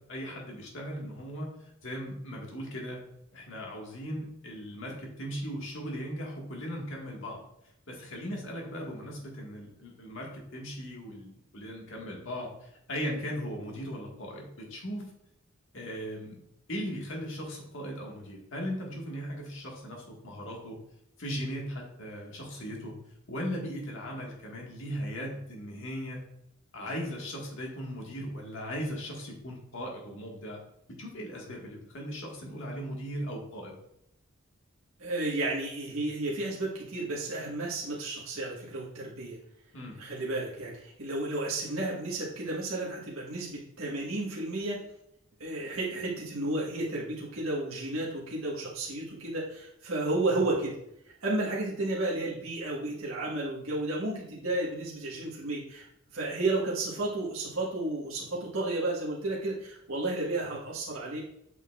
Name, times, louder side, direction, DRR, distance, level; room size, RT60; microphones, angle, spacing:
voice 1, 0.1-1.5 1.8-3.0 3.3-7.4 7.9-15.0 15.7-16.4 16.7-20.8 21.2-22.9 23.3-26.2 26.7-30.6 31.0-33.7 39.7-40.0, equal, 60° left, -1 dB, 1.8 m, -38 dB
voice 2, 35.0-39.4 40.0-44.8 45.4-50.8 51.2-55.8 56.1-61.2, right 2 dB, 70° right, -5 dB, 1.5 m, -32 dB
7.9 x 5.8 x 2.5 m, 0.78 s
head